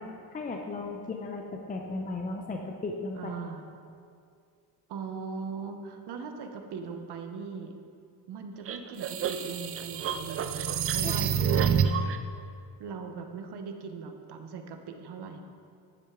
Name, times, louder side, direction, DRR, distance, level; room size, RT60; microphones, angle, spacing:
voice 1, 0.0-3.3 11.0-11.1, left 3 dB, 20° left, 2 dB, 0.6 m, -36 dB
voice 2, 3.1-3.6 4.9-7.7 8.3-11.3 12.0-12.1 12.8-15.4, right 5 dB, 60° right, 5 dB, 0.9 m, -40 dB
sound 1, 8.7-12.2, right 7 dB, 35° right, 0.4 m, -28 dB
10.0 x 6.5 x 3.7 m, 2.3 s
cardioid pair, 105°, 46 cm